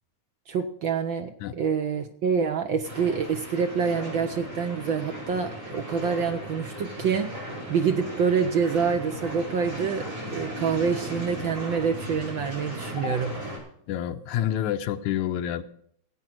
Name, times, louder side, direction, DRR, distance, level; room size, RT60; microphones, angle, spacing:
voice 1, 0.5-7.3 7.7-13.3, right 6 dB, 70° right, 6 dB, 1.1 m, -26 dB
sound 1, 2.8-13.6, equal, 25° right, 6.4 m, -37 dB
voice 2, 13.9-15.6, left 10 dB, 90° left, 9 dB, 2.2 m, -28 dB
16.0 x 9.0 x 6.2 m, 0.66 s
omnidirectional pair, 3.3 m